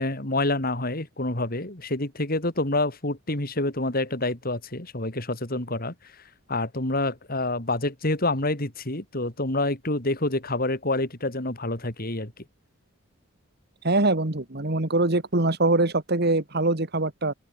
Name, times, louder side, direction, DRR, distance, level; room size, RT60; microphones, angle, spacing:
voice 1, 0.0-6.2 6.5-12.4, left 2 dB, 45° left, 3.9 m, -27 dB
voice 2, 13.8-17.3, right 2 dB, 55° right, 2.0 m, -23 dB
open air
head